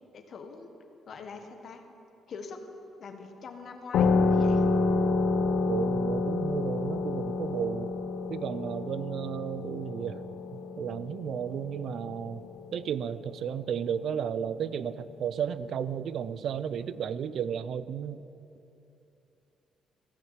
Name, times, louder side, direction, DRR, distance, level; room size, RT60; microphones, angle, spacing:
voice 1, 0.1-0.7 1.1-1.8 2.3-2.6 3.0-4.7, left 5 dB, 55° left, 5 dB, 1.3 m, -43 dB
sound 1, 3.9-13.1, left 3 dB, 75° left, 0.7 m, -28 dB
voice 2, 5.7-7.9 8.3-18.2, right 8 dB, 65° right, 15 dB, 0.4 m, -33 dB
15.0 x 6.2 x 7.4 m, 2.8 s
cardioid pair, 90°, 0 cm